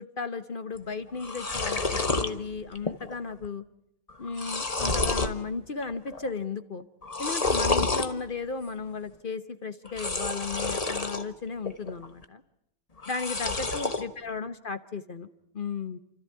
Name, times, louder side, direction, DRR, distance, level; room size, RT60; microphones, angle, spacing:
voice 1, 0.0-3.6 4.2-6.9 7.2-12.4 13.1-15.3 15.5-16.0, left 4 dB, 50° left, 11 dB, 0.6 m, -35 dB
sound 1, 0.8-0.9 1.1-2.3 2.7-3.2 3.4-3.5 4.1-5.4 5.8-6.3 7.0-8.1 9.8-11.2 11.6-12.2 13.0-14.0, left 3 dB, 25° left, 0.9 m, -29 dB
29.5 x 13.5 x 9.4 m, 0.81 s
omnidirectional pair, 2.3 m